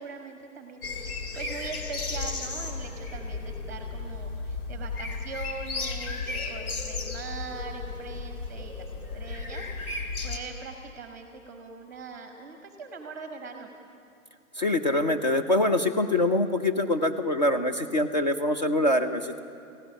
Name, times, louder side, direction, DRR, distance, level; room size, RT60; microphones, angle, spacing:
voice 1, 0.0-8.9 9.1-13.7, right 4 dB, 10° right, 5 dB, 0.8 m, -41 dB
sound 1, 0.8-10.4, left 3 dB, 85° left, 3.4 m, -34 dB
voice 2, 14.6-19.4, left 1 dB, 30° left, 6 dB, 0.6 m, -24 dB
17.0 x 16.0 x 9.9 m, 2.4 s
hypercardioid pair, 175°, 43 cm